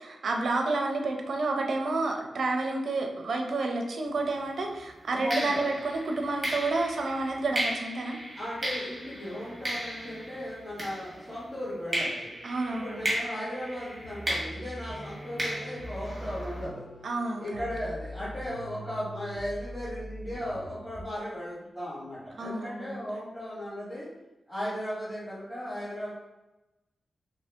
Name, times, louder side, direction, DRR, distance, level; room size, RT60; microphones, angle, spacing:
voice 1, 0.1-8.2 12.4-13.1 17.0-17.6 22.4-23.1, right 2 dB, 70° right, 3 dB, 0.5 m, -30 dB
sound 1, 4.1-4.4 5.3-11.5 11.9-16.6, right 1 dB, 30° right, 1.2 m, -35 dB
voice 2, 5.1-5.7 8.4-12.3 12.7-16.8 17.4-24.1 24.5-26.1, equal, 10° left, -11 dB, 1.2 m, -36 dB
sound 2, 14.0-21.2, equal, 85° left, 0.6 m, -42 dB
2.8 x 2.7 x 3.3 m, 1.0 s
wide cardioid pair, 95°, 0 cm